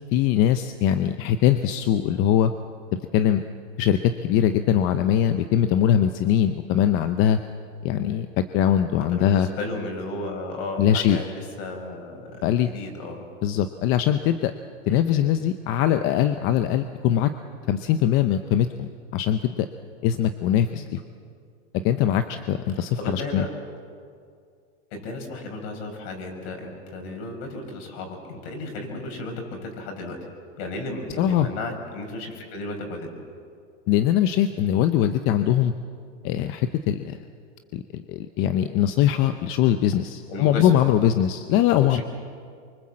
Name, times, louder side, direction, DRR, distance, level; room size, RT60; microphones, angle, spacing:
voice 1, 0.1-2.5 2.9-3.4 3.8-7.4 7.8-9.5 10.8-11.2 12.4-12.7 13.4-14.5 14.9-17.3 17.7-19.7 20.0-21.0 21.8-23.5 31.2-31.5 33.9-35.7 36.2-37.2 37.7-42.0, left 10 dB, 35° left, 9 dB, 0.7 m, -22 dB
voice 2, 9.0-13.3 14.9-15.0 20.7-20.9 22.7-23.5 24.9-30.2 30.6-33.1 40.3-40.7 41.7-42.0, left 2 dB, 55° left, 3 dB, 5.7 m, -34 dB
24.5 x 24.5 x 7.6 m, 2.3 s
supercardioid pair, 150°, 37 cm